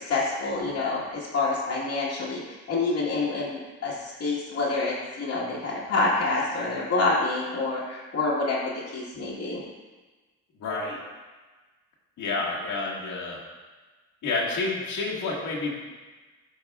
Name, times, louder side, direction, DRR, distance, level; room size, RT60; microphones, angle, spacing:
voice 1, 0.0-2.4 2.7-9.6, left 3 dB, 60° left, -8 dB, 1.6 m, -27 dB
voice 2, 10.6-11.0 12.2-13.4 14.2-15.8, left 3 dB, 75° left, -4 dB, 1.8 m, -29 dB
12.0 x 4.7 x 2.4 m, 1.3 s
cardioid pair, 90°, 30 cm